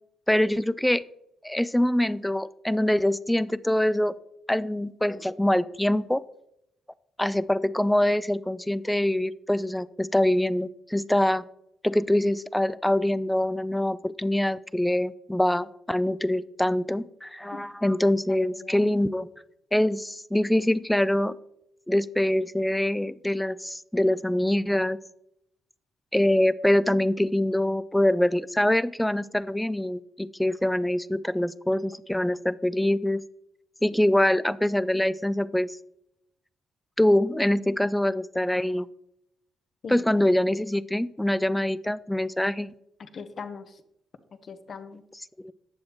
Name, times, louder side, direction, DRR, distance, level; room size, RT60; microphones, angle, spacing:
voice 1, 0.3-1.0 1.4-4.2 4.5-6.2 7.2-11.4 11.8-19.3 19.7-21.3 21.9-25.0 26.1-33.2 33.8-35.7 37.0-38.9 39.9-42.7 45.4-45.5, left 1 dB, 5° left, 17 dB, 0.4 m, -24 dB
voice 2, 18.3-18.8 39.8-40.1 43.0-43.8 44.4-45.0, left 5 dB, 50° left, 10 dB, 0.9 m, -40 dB
9.6 x 7.1 x 3.1 m, 0.79 s
hypercardioid pair, 55°, 0 cm